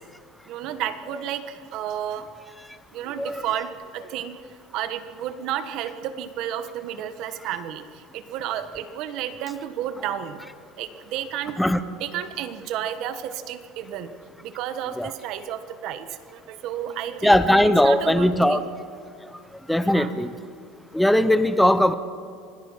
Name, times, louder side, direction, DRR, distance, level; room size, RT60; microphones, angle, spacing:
voice 1, 0.5-2.3 2.9-4.4 4.7-7.8 8.1-10.4 10.8-11.6 12.0-14.1 14.4-18.6 19.8-20.1, right 10 dB, 45° right, 11 dB, 1.3 m, -32 dB
voice 2, 17.2-18.6 19.7-20.3 20.9-21.9, left 1 dB, ahead, 11 dB, 0.6 m, -19 dB
25.5 x 18.5 x 5.8 m, 2.4 s
cardioid pair, 175°, 0 cm